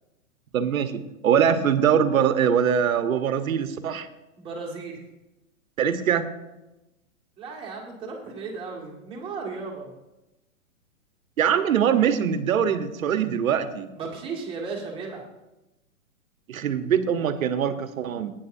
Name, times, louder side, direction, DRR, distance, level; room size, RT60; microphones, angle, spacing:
voice 1, 0.5-4.1 5.8-6.2 11.4-13.9 16.5-18.3, right 8 dB, 75° right, 9 dB, 1.2 m, -23 dB
voice 2, 4.4-5.0 7.4-9.9 13.9-15.3, right 4 dB, 15° right, -3 dB, 2.0 m, -35 dB
17.5 x 9.5 x 2.7 m, 0.99 s
hypercardioid pair, 160°, 41 cm